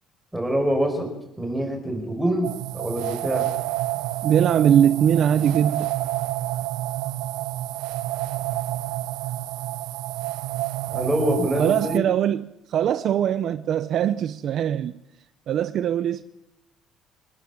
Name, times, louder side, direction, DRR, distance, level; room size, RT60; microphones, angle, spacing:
voice 1, 0.3-1.1 1.4-3.5 10.9-12.1, equal, 5° right, 5.3 m, -25 dB
sound 1, 2.4-12.0, right 16 dB, 90° right, 0.9 m, -29 dB
voice 2, 4.2-5.9 11.6-14.9 15.5-16.2, right 9 dB, 45° right, 0.8 m, -21 dB
26.0 x 20.0 x 7.4 m
cardioid pair, 170°, 0 cm